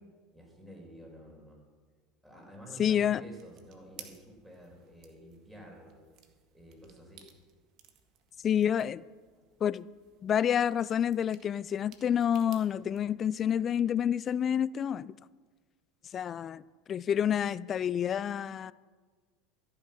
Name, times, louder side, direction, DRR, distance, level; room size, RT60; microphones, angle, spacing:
voice 1, 0.3-1.6 2.2-6.0 6.5-7.3 9.4-9.5, equal, 5° right, 4.8 m, -50 dB
voice 2, 2.8-3.2 8.4-9.0 9.6-9.9 10.2-15.1 16.1-16.6 16.9-18.7, left 9 dB, 40° left, 0.3 m, -28 dB
sound 1, 3.3-13.0, right 9 dB, 55° right, 1.6 m, -58 dB
14.0 x 8.8 x 6.0 m
hypercardioid pair, 80°, 0 cm